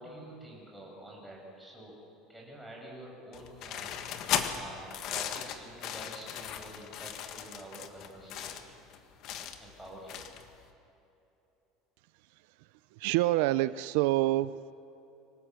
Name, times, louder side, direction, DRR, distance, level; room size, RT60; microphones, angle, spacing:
voice 1, 0.0-2.0 2.3-4.1 4.5-8.8 9.6-10.2, right 1 dB, 5° right, -2 dB, 6.3 m, -48 dB
sound 1, 3.3-10.6, left 9 dB, 50° left, 1.6 m, -37 dB
voice 2, 12.6-14.7, right 16 dB, 80° right, 15 dB, 0.5 m, -28 dB
25.0 x 18.5 x 7.8 m, 2.8 s
cardioid pair, 155°, 0 cm